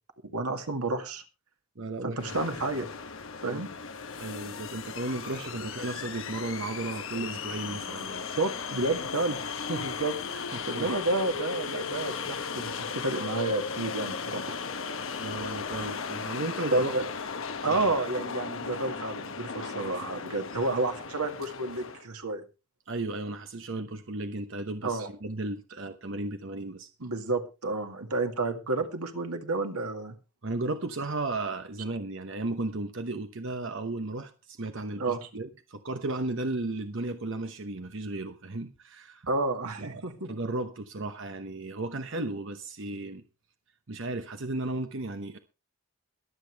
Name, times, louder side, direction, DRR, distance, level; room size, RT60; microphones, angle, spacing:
voice 1, 0.3-1.2 2.0-2.9 3.4-3.7 8.4-9.4 9.7-10.2 10.7-14.4 15.7-15.8 16.7-17.0 17.6-22.4 24.8-25.1 27.0-30.1 35.0-35.2 39.3-40.3, right 2 dB, 90° right, 2.1 m, -30 dB
voice 2, 1.8-2.2 3.5-3.6 4.2-8.4 10.3-11.0 15.2-17.1 17.7-17.8 22.9-26.9 30.4-39.3 39.8-43.2 43.9-45.4, right 2 dB, 55° right, 0.9 m, -35 dB
sound 1, 2.2-22.0, left 5 dB, 60° left, 1.0 m, -36 dB
22.5 x 8.3 x 3.4 m
head